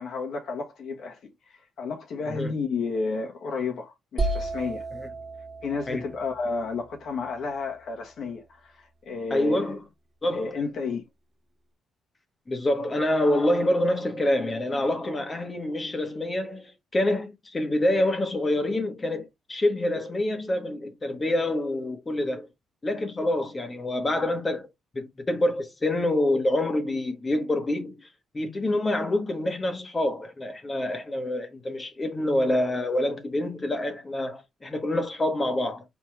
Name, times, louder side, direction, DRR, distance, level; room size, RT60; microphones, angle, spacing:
voice 1, 0.0-4.8 5.6-9.7 10.3-11.1, left 4 dB, 65° left, 1.4 m, -32 dB
sound 1, 4.2-8.0, right 2 dB, 25° right, 1.6 m, -33 dB
voice 2, 9.3-9.8 10.2-10.5 12.5-22.5 22.8-24.7 24.9-28.1 28.3-35.8, left 1 dB, 25° left, 1.2 m, -26 dB
4.2 x 3.7 x 3.1 m
cardioid pair, 90°, 0 cm